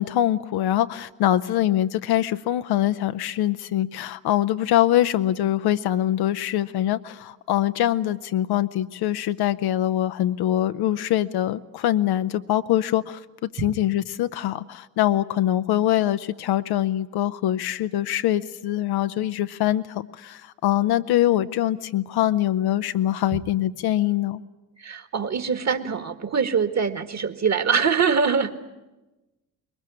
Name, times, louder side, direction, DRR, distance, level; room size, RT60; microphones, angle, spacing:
voice 1, 0.0-24.4, left 13 dB, 50° left, 11 dB, 0.8 m, -23 dB
voice 2, 24.8-28.7, right 6 dB, 35° right, 11 dB, 1.9 m, -24 dB
22.0 x 20.0 x 9.9 m, 1.0 s
figure-of-eight pair, 45°, 48 cm